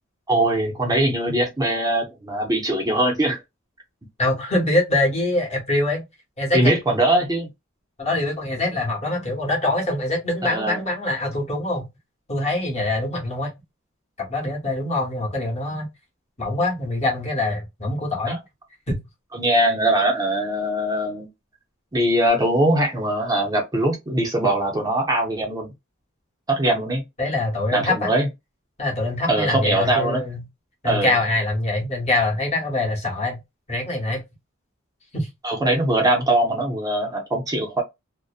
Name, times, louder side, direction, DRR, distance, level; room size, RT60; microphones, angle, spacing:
voice 1, 0.3-3.4 6.5-7.5 10.5-10.8 18.3-18.4 19.3-21.3 21.9-25.7 26.5-27.0 27.7-28.3 29.3-30.2 30.8-31.2 35.4-37.8, right 1 dB, 20° right, 0.6 m, -21 dB
voice 2, 4.2-6.0 6.4-6.7 8.0-11.9 12.3-13.5 14.2-15.9 16.4-18.4 18.9-19.0 27.2-28.1 28.8-30.4 30.8-33.4 33.7-34.2 35.1-35.3, left 2 dB, 30° left, 0.9 m, -24 dB
2.5 x 2.1 x 2.3 m
head